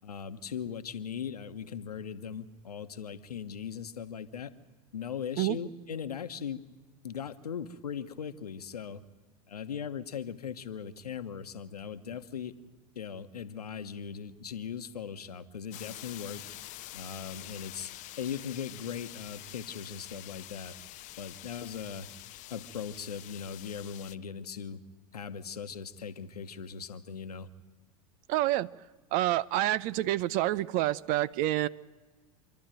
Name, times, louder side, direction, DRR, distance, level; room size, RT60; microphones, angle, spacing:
voice 1, 0.0-4.5 4.9-6.6 7.0-9.0 9.5-12.5 12.9-16.4 16.9-17.9 18.2-20.8 21.2-22.1 22.5-24.8 25.1-27.5, left 7 dB, 85° left, 11 dB, 1.1 m, -39 dB
sound 1, 15.7-24.1, left 16 dB, 40° left, 0.7 m, -46 dB
voice 2, 28.3-28.7 29.1-31.7, right 15 dB, 45° right, 19 dB, 0.6 m, -28 dB
26.5 x 11.5 x 9.1 m, 1.3 s
hypercardioid pair, 95°, 19 cm